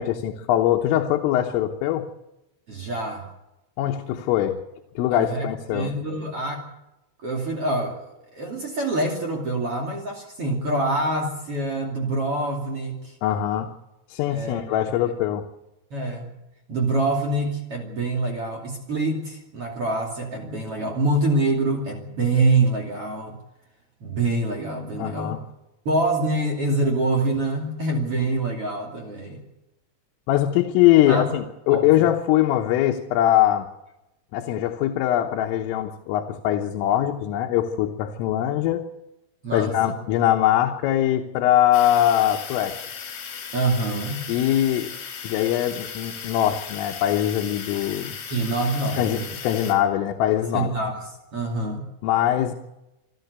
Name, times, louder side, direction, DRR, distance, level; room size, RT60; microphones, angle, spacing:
voice 1, 0.0-2.1 3.8-4.6 5.0-5.9 13.2-13.7 14.1-15.4 25.0-25.4 30.3-33.7 34.3-38.8 39.5-42.8 44.3-44.9 45.2-48.2 49.0-50.7 52.0-52.5, left 12 dB, 80° left, 2 dB, 3.7 m, -22 dB
voice 2, 2.7-3.3 5.1-6.6 7.2-13.2 14.3-14.9 15.9-16.3 16.7-23.4 24.0-25.4 25.8-29.4 31.1-31.3 31.7-32.1 39.4-39.7 43.5-44.3 48.3-49.3 50.5-51.0 51.3-51.9, right 2 dB, 35° right, 1 dB, 2.7 m, -25 dB
sound 1, 41.7-49.7, left 7 dB, 65° left, 5.7 m, -36 dB
27.0 x 12.0 x 8.1 m, 0.92 s
omnidirectional pair, 5.8 m